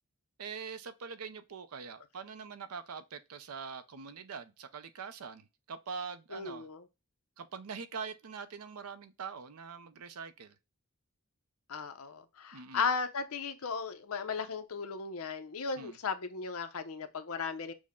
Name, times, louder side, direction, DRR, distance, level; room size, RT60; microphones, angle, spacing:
voice 1, 0.4-6.7 7.4-10.5 12.5-12.9 15.8-16.0, right 5 dB, 90° right, 0.6 m, -43 dB
voice 2, 6.3-6.9 11.7-17.7, left 5 dB, 75° left, 0.7 m, -36 dB
6.2 x 2.1 x 3.5 m
head